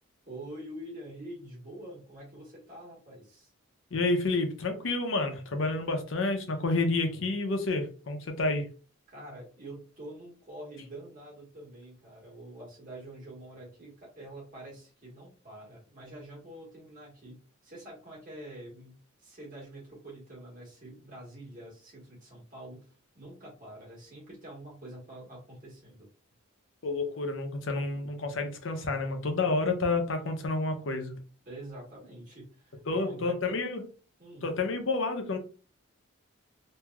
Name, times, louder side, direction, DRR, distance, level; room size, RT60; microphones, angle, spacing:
voice 1, 0.3-3.5 9.1-22.9 23.1-26.1 31.4-33.6 34.2-34.5, right 1 dB, 40° right, -3 dB, 1.3 m, -46 dB
voice 2, 3.9-8.7 26.8-31.1 32.9-33.8 34.4-35.4, left 3 dB, 65° left, 5 dB, 0.6 m, -29 dB
3.0 x 2.7 x 2.3 m, 0.37 s
head